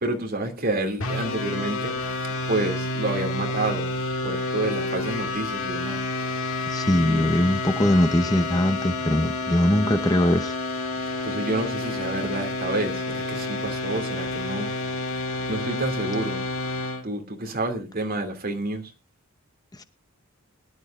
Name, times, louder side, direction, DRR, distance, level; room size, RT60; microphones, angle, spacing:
voice 1, 0.0-1.9 2.5-3.9 4.2-6.0 7.0-7.3 11.2-14.7 15.5-16.4 17.0-18.9, right 2 dB, 45° right, 2.6 m, -29 dB
sound 1, 1.0-17.0, left 2 dB, 75° left, 1.7 m, -29 dB
voice 2, 6.6-10.6 19.7-19.8, left 1 dB, 15° left, 0.7 m, -21 dB
22.5 x 11.0 x 2.5 m
head